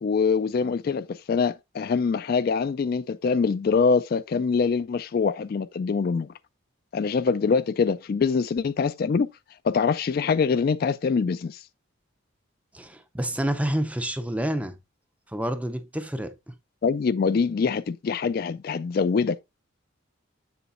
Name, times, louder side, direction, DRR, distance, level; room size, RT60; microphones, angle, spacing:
voice 1, 0.0-6.3 6.9-9.3 9.6-11.6 16.8-19.4, left 5 dB, 45° left, 0.3 m, -24 dB
voice 2, 12.7-14.8 15.3-16.5, right 1 dB, 5° right, 0.5 m, -28 dB
7.9 x 7.0 x 2.5 m
head